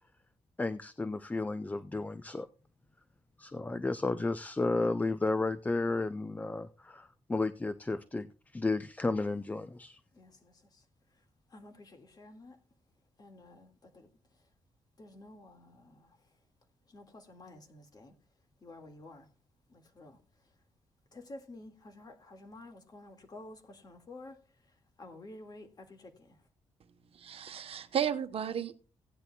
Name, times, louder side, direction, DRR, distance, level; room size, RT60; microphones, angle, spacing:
voice 1, 0.6-2.5 3.4-8.3 8.5-10.0, left 3 dB, 15° left, 0.5 m, -33 dB
voice 2, 10.1-12.6 13.2-14.5 15.0-16.4 16.9-18.2 18.6-19.3 19.7-20.6 21.1-26.5, left 2 dB, 35° left, 1.9 m, -52 dB
voice 3, 27.1-28.7, right 8 dB, 55° right, 1.0 m, -33 dB
16.5 x 10.5 x 2.3 m
cardioid pair, 130°, 11 cm